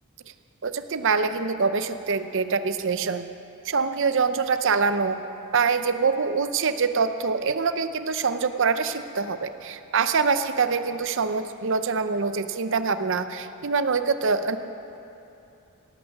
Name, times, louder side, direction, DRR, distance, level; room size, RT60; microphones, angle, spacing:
voice 1, 0.6-3.3 3.6-5.2 5.5-14.6, right 5 dB, 60° right, 10 dB, 0.7 m, -24 dB
17.5 x 12.5 x 6.0 m, 2.9 s
head